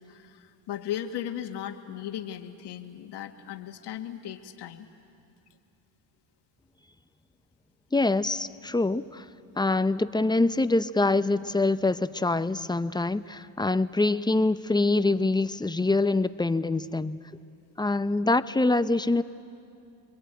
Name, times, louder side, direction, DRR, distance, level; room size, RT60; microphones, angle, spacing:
voice 1, 0.1-4.9, left 10 dB, 65° left, 6 dB, 2.0 m, -37 dB
voice 2, 7.9-9.2 9.6-17.2 17.8-19.2, left 2 dB, 10° left, 12 dB, 0.7 m, -25 dB
28.5 x 22.0 x 9.1 m, 2.5 s
supercardioid pair, 80°, 44 cm